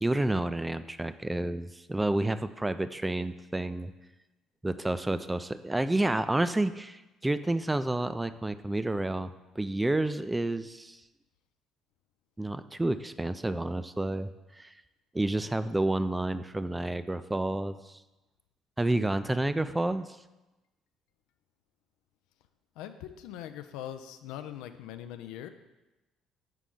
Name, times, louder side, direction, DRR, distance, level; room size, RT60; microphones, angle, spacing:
voice 1, 0.0-3.9 4.6-9.3 9.6-11.0 12.4-14.7 15.1-18.0 18.8-20.1, right 2 dB, 15° right, 12 dB, 0.3 m, -30 dB
voice 2, 22.8-25.5, left 11 dB, 70° left, 10 dB, 0.3 m, -41 dB
5.7 x 4.9 x 3.7 m, 1.1 s
hypercardioid pair, 55°, 0 cm